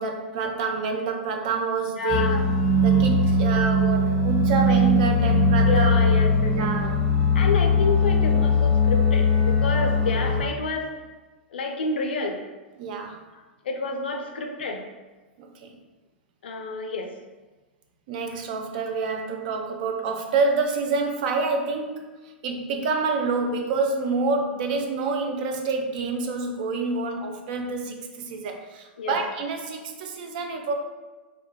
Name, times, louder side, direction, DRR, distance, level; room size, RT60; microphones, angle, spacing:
voice 1, 0.0-2.3 2.8-6.0 6.5-6.9 12.8-13.2 15.4-15.8 18.1-30.7, right 4 dB, 50° right, 3 dB, 0.4 m, -27 dB
voice 2, 2.0-2.5 5.6-6.9 7.3-10.9 11.5-12.4 13.3-14.8 16.4-17.1 29.0-29.2, left 3 dB, 70° left, 3 dB, 0.4 m, -29 dB
sound 1, 2.1-10.4, left 2 dB, ahead, 0.7 m, -20 dB
2.3 x 2.1 x 2.9 m, 1.2 s
figure-of-eight pair, 100°, 6 cm